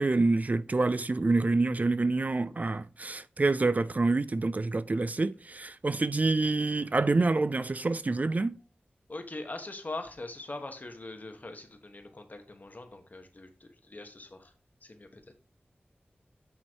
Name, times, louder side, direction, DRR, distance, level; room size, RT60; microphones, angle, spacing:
voice 1, 0.0-8.6, right 3 dB, 40° right, 0.4 m, -27 dB
voice 2, 9.1-14.5 14.8-15.3, left 2 dB, 45° left, 1.2 m, -42 dB
8.8 x 3.1 x 4.5 m
wide cardioid pair, 65°, 4 cm